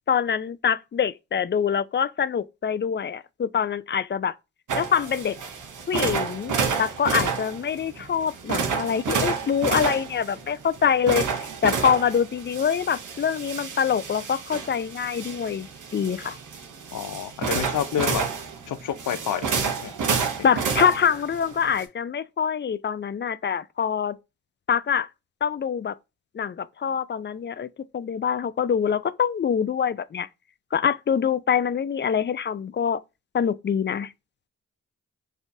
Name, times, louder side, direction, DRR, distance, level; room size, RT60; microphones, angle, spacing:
voice 1, 0.1-4.3 4.7-5.4 5.9-15.7 15.9-16.4 20.4-24.2 24.7-25.1 25.4-25.9 26.3-27.7 27.9-30.3 30.7-33.0 33.3-34.1, left 7 dB, 40° left, 0.4 m, -25 dB
sound 1, 4.7-21.8, right 5 dB, 80° right, 0.9 m, -30 dB
voice 2, 16.9-18.2 18.7-20.3, left 9 dB, 90° left, 0.5 m, -29 dB
5.3 x 2.4 x 2.6 m
cardioid pair, 50°, 30 cm